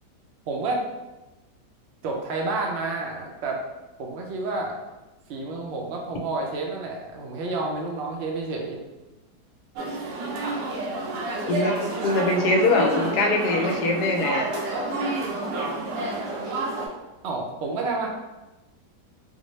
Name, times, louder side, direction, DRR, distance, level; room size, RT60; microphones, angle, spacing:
voice 1, 0.5-0.8 2.0-3.6 4.0-4.7 5.3-8.8 17.2-18.1, right 3 dB, 70° right, 0 dB, 0.6 m, -29 dB
sound 1, 9.8-16.9, right 2 dB, 90° right, 1.2 m, -29 dB
voice 2, 11.5-14.5, left 2 dB, 75° left, 2 dB, 1.1 m, -23 dB
4.0 x 2.0 x 3.1 m, 1.1 s
omnidirectional pair, 1.8 m